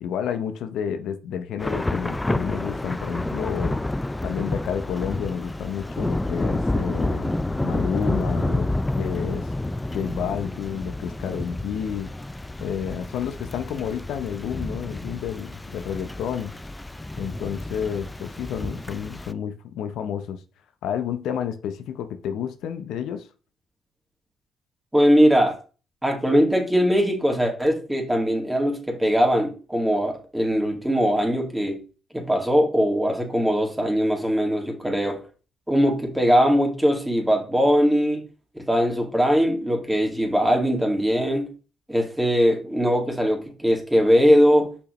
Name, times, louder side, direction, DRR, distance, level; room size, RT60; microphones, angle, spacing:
voice 1, 0.0-3.8 4.2-8.7 9.0-9.5 9.9-12.1 12.6-16.5 17.2-20.4 20.8-23.3, left 8 dB, 80° left, 9 dB, 0.6 m, -30 dB
Thunder / Rain, 1.6-19.3, left 2 dB, 10° left, 0.4 m, -29 dB
voice 2, 24.9-25.6 26.0-31.8 32.1-35.2 35.7-38.3 38.6-41.5 41.9-44.7, equal, 5° right, 2 dB, 2.2 m, -21 dB
6.3 x 5.7 x 3.1 m, 0.35 s
cardioid pair, 90°, 0 cm